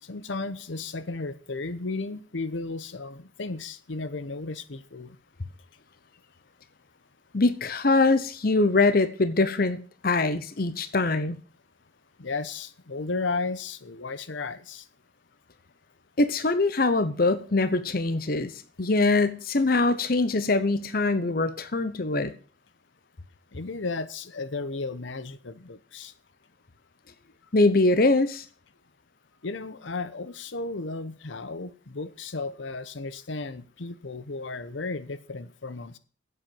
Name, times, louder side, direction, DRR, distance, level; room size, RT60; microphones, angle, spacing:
voice 1, 0.0-5.2 12.2-14.9 23.5-26.1 29.4-36.0, left 3 dB, 75° left, 0.9 m, -34 dB
voice 2, 7.3-9.8 10.0-11.4 16.2-18.5 18.8-22.3 27.5-28.4, left 3 dB, 50° left, 0.8 m, -23 dB
10.0 x 8.1 x 7.6 m
head